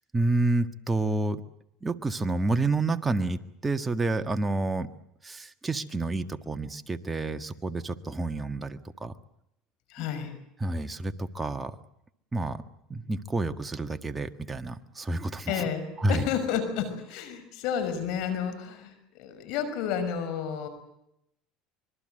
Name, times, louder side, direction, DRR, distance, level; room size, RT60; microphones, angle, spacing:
voice 1, 0.1-1.4 1.8-4.9 5.2-9.1 10.6-11.8 12.3-12.6 12.9-15.7 16.0-16.3, right 2 dB, 15° right, 8 dB, 1.6 m, -29 dB
voice 2, 9.9-10.3 15.5-20.7, left 8 dB, 70° left, 10 dB, 5.8 m, -31 dB
25.5 x 21.5 x 7.8 m, 0.78 s
supercardioid pair, 100°, 0 cm